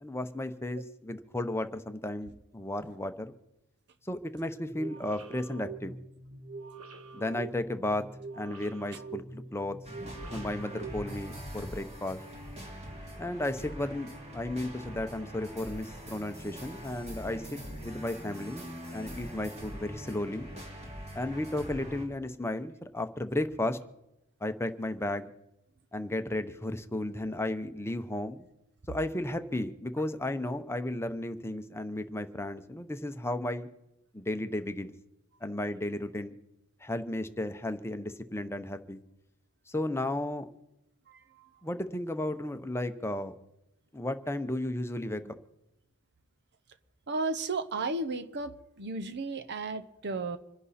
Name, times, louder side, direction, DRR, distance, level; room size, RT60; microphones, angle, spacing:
voice 1, 0.0-3.3 4.0-6.0 7.1-8.1 8.3-9.8 10.3-12.2 13.2-18.7 18.9-20.5 21.1-23.8 24.4-25.3 25.9-28.5 28.9-33.7 34.1-34.9 35.4-36.3 36.8-39.0 39.7-40.5 41.6-43.3 43.9-45.3, left 1 dB, 10° left, 9 dB, 0.8 m, -34 dB
sound 1, 4.7-11.6, right 4 dB, 75° right, 1.9 m, -45 dB
sound 2, 9.8-22.0, equal, 30° right, 2.9 m, -43 dB
voice 2, 47.1-50.4, right 3 dB, 50° right, 11 dB, 0.9 m, -33 dB
26.5 x 11.0 x 4.3 m, 0.89 s
head